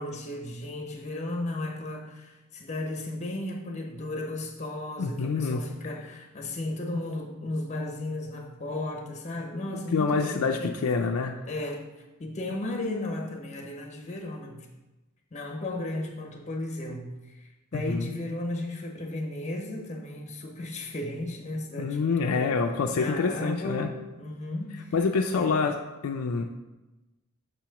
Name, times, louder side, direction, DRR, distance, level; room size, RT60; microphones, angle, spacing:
voice 1, 0.0-10.8 11.5-11.9 12.2-14.7 15.3-22.6 22.9-24.9 25.3-25.5, left 1 dB, 35° left, 2 dB, 0.9 m, -35 dB
voice 2, 5.0-5.6 9.9-11.4 17.7-18.1 21.8-23.9 24.9-25.8 26.0-26.5, left 4 dB, 75° left, 3 dB, 0.4 m, -26 dB
6.7 x 3.0 x 5.7 m, 1.1 s
head